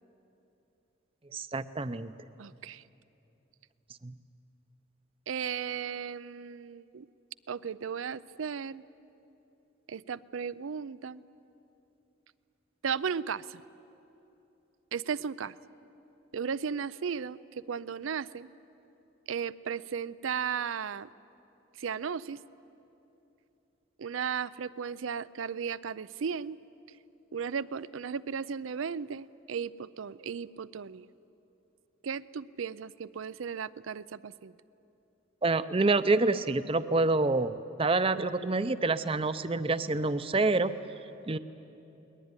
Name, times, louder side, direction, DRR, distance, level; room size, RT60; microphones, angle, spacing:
voice 1, 1.3-2.1 4.0-4.1 35.4-40.7 41.3-41.4, right 3 dB, 30° right, 13 dB, 0.6 m, -27 dB
voice 2, 2.4-2.8 5.3-7.1 7.5-8.8 9.9-11.2 12.8-13.6 14.9-15.5 16.3-18.5 19.3-21.1 21.8-22.4 24.0-26.6 27.3-31.1 32.0-34.5, right 6 dB, 85° right, 18 dB, 0.5 m, -35 dB
21.0 x 20.0 x 9.8 m, 2.9 s
head